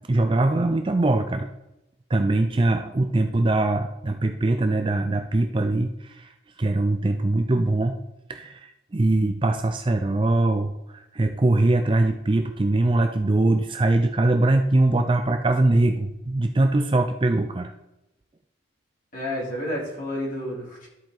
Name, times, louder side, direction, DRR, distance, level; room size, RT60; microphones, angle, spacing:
voice 1, 0.1-1.5 2.1-6.3 6.6-7.9 8.3-17.7, right 2 dB, 25° right, 6 dB, 0.4 m, -22 dB
voice 2, 19.1-20.9, left 1 dB, 45° left, -4 dB, 2.8 m, -30 dB
13.0 x 4.5 x 3.9 m, 0.90 s
head